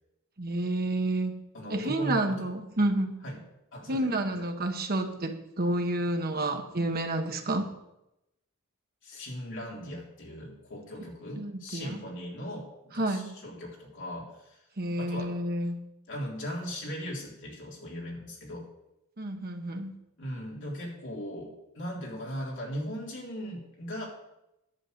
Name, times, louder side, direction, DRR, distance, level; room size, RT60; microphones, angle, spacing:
voice 1, 0.4-3.2 3.9-7.7 11.4-12.0 13.0-13.4 14.8-15.8 19.2-19.9, right 1 dB, 45° right, 5 dB, 1.2 m, -30 dB
voice 2, 1.5-2.5 3.2-3.4 3.7-4.5 9.0-14.6 15.0-15.4 16.1-18.7 20.2-24.1, equal, 60° left, -2 dB, 3.4 m, -38 dB
11.0 x 7.4 x 6.5 m, 0.89 s
head